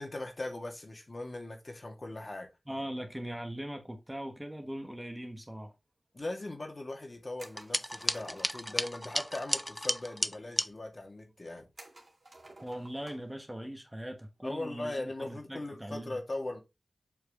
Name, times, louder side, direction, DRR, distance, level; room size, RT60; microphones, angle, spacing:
voice 1, 0.0-2.5 6.1-11.7 14.4-16.6, left 2 dB, 45° left, 2.1 m, -39 dB
voice 2, 2.7-5.7 12.6-16.2, equal, 10° right, 1.3 m, -40 dB
sound 1, 7.4-10.7, equal, 5° left, 0.3 m, -33 dB
sound 2, 7.4-9.0 11.8-13.4 13.7-13.8 15.4-15.7, right 2 dB, 55° right, 2.1 m, -54 dB
7.6 x 4.7 x 3.2 m
wide cardioid pair, 60°, 0 cm